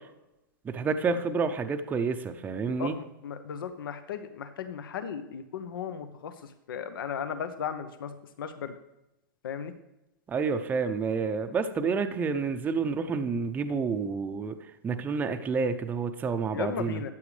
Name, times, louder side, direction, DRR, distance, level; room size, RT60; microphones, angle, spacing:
voice 1, 0.6-3.0 10.3-14.6 14.8-17.0, right 5 dB, 15° right, 7 dB, 0.6 m, -29 dB
voice 2, 2.8-8.7 9.4-9.7 16.5-17.1, left 7 dB, 80° left, 10 dB, 0.9 m, -36 dB
13.0 x 8.7 x 3.3 m, 0.91 s
hypercardioid pair, 140°, 11 cm